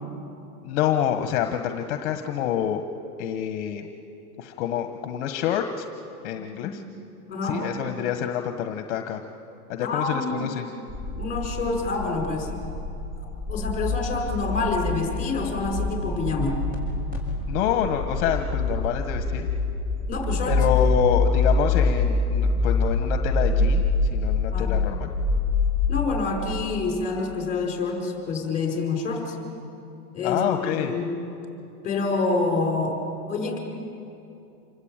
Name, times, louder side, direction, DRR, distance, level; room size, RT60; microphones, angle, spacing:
voice 1, 0.6-2.9 3.2-3.9 4.4-5.9 6.2-6.8 7.4-9.2 9.7-10.6 17.5-19.5 20.5-23.8 24.1-25.1 30.2-30.9, left 9 dB, 50° left, 6 dB, 1.5 m, -27 dB
voice 2, 7.3-7.6 9.8-10.5 11.2-12.5 13.2-16.6 20.1-20.6 24.5-24.8 25.9-29.4 30.1-31.1 31.8-33.0 33.3-33.6, left 3 dB, 15° left, 0 dB, 5.2 m, -27 dB
sound 1, 10.9-26.2, left 3 dB, 20° right, 6.5 m, -25 dB
27.5 x 21.0 x 9.1 m, 2.8 s
supercardioid pair, 155°, 45 cm